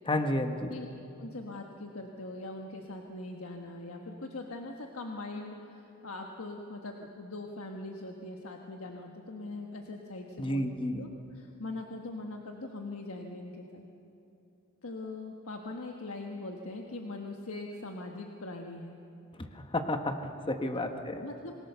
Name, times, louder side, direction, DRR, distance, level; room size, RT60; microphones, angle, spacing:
voice 1, 0.1-0.7 10.4-11.0 19.4-21.3, left 1 dB, 25° left, 6 dB, 1.2 m, -31 dB
voice 2, 1.2-10.7 11.0-13.8 14.8-18.9 20.8-21.5, left 2 dB, 90° left, 2 dB, 1.4 m, -41 dB
26.5 x 20.0 x 6.8 m, 2.8 s
head